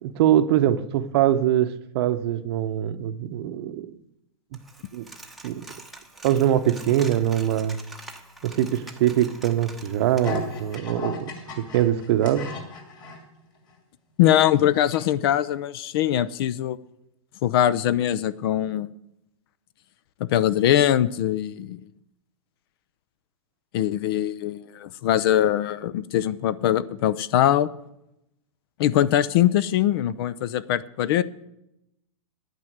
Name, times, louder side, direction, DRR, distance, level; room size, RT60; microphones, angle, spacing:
voice 1, 0.0-3.9 4.9-5.1 5.4-5.7 6.2-7.8 8.4-11.3 11.6-12.5, right 11 dB, 45° right, 11 dB, 0.8 m, -23 dB
Coin (dropping), 4.5-10.8, right 2 dB, ahead, 0.9 m, -45 dB
sound 1, 10.2-13.2 13.7-13.8 14.3-15.0 15.3-15.4, left 2 dB, 25° left, 2.5 m, -35 dB
voice 2, 14.2-16.8 17.4-18.9 20.3-21.8 23.7-27.7 28.8-31.2, left 11 dB, 45° left, 18 dB, 0.5 m, -22 dB
10.5 x 9.2 x 8.0 m, 0.86 s
hypercardioid pair, 150°, 18 cm